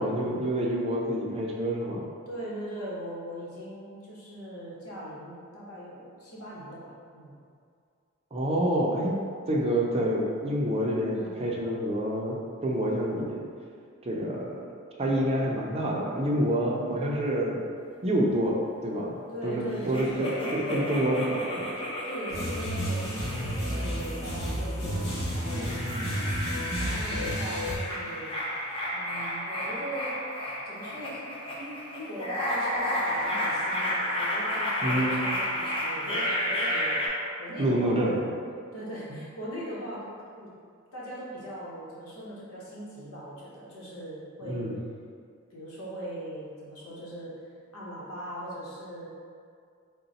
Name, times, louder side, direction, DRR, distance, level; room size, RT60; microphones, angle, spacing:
voice 1, 0.0-2.1 8.3-13.4 14.0-14.6 15.0-17.6 18.0-21.7 34.8-35.2 37.6-38.1 44.4-44.8, right 1 dB, 30° right, -2 dB, 0.5 m, -27 dB
voice 2, 2.3-7.4 11.1-11.5 19.3-20.4 20.7-21.1 22.0-25.7 26.8-28.3 28.9-30.3 30.6-37.0 37.4-38.4 38.7-40.5 40.9-44.7 45.5-47.4 47.7-49.1, equal, 85° left, -6 dB, 1.0 m, -40 dB
sound 1, 19.9-24.6 25.2-37.1, equal, 25° left, 0.6 m, -32 dB
sound 2, 22.3-27.8, equal, 50° left, 1.0 m, -31 dB
3.8 x 2.2 x 4.0 m, 2.2 s
head